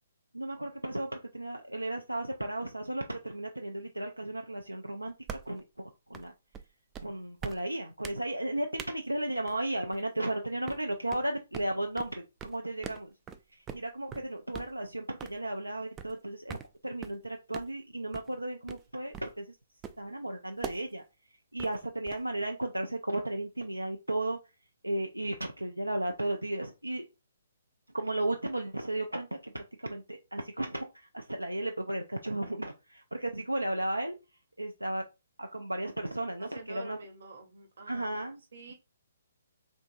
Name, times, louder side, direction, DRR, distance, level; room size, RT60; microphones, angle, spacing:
voice 1, 0.3-6.3 7.0-13.1 13.5-19.6 20.0-21.0 21.5-24.4 24.8-27.0 27.9-34.2 34.6-35.1 35.4-37.0 37.9-38.4, right 1 dB, 85° right, 0.4 m, -34 dB
sound 1, 5.3-5.6 6.1-6.3 6.5-6.6 6.9-7.1 7.4-7.6 8.0-8.2 8.8-8.9 9.5-9.6 9.9-10.2 10.7-10.8 11.1-11.2 11.5-11.7 12.0-12.1 12.4-12.6 12.8-13.0 13.3-13.4 13.7-13.8 14.1-14.3 14.5-14.7 15.2-15.4 16.0-16.1 16.5-16.7 17.0-17.2 17.5-17.7 18.1-18.3 18.7-18.8 19.1-19.3 19.8-20.1 20.6-20.8 21.6-22.4, right 7 dB, 15° right, 0.3 m, -41 dB
voice 2, 36.4-38.2 38.5-38.7, right 3 dB, 55° right, 1.0 m, -47 dB
3.5 x 2.9 x 2.6 m
figure-of-eight pair, 130°, 0 cm